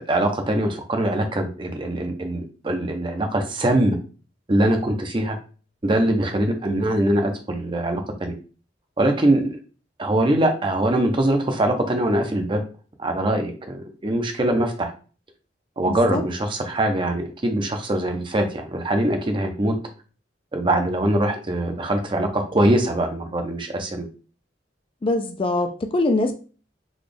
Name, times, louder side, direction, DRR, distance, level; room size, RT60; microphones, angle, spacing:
voice 1, 0.0-4.0 4.5-5.4 5.8-8.3 9.0-9.6 10.0-12.6 13.0-14.9 15.8-19.8 20.5-24.1, right 1 dB, 25° right, 5 dB, 0.6 m, -22 dB
voice 2, 15.9-16.2 25.0-26.3, left 2 dB, 30° left, 6 dB, 0.4 m, -23 dB
3.9 x 2.3 x 3.3 m, 0.37 s
head